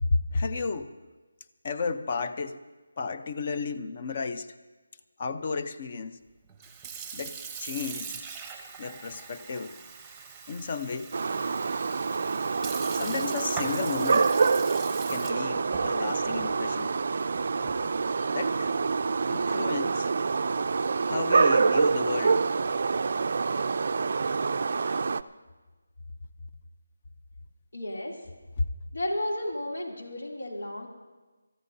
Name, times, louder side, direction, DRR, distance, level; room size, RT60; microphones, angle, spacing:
voice 1, 0.0-0.9 1.6-2.6 3.0-4.5 5.2-6.2 7.1-8.2 8.8-9.8 10.5-11.1 12.9-14.3 15.1-17.0 18.1-18.8 19.3-20.1 21.1-22.4 24.8-25.0 28.6-28.7, left 4 dB, 35° left, 10 dB, 0.7 m, -33 dB
Sink (filling or washing) / Fill (with liquid), 6.5-18.0, right 5 dB, 5° right, 0.9 m, -42 dB
sound 1, 11.1-25.2, right 4 dB, 45° right, 0.4 m, -26 dB
voice 2, 27.7-28.2 28.9-30.9, left 1 dB, 80° left, -1 dB, 2.9 m, -33 dB
25.5 x 14.0 x 2.8 m, 1.3 s
figure-of-eight pair, 170°, 0 cm